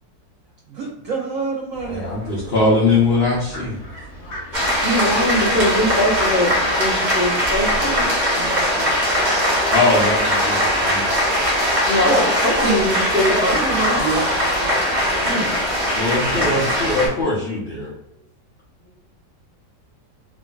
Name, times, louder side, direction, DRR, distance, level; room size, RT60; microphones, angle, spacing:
voice 1, 0.7-2.4 13.4-14.4, right 4 dB, 90° right, -2 dB, 0.7 m, -27 dB
Fowl, 1.7-17.2, equal, 55° left, 1.1 m, -38 dB
voice 2, 1.9-3.8 9.7-11.1 15.9-17.9, left 2 dB, 80° left, -6 dB, 0.5 m, -21 dB
sound 1, 4.5-17.1, equal, 35° right, 0.7 m, -20 dB
voice 3, 4.8-6.5 6.8-8.1 11.9-14.0 15.2-15.6, equal, 20° right, -8 dB, 0.3 m, -22 dB
voice 4, 8.3-8.9 11.8-13.0 13.3-13.6 18.8-19.0, equal, 15° left, -8 dB, 0.6 m, -30 dB
2.9 x 2.5 x 2.2 m, 0.83 s
omnidirectional pair, 2.0 m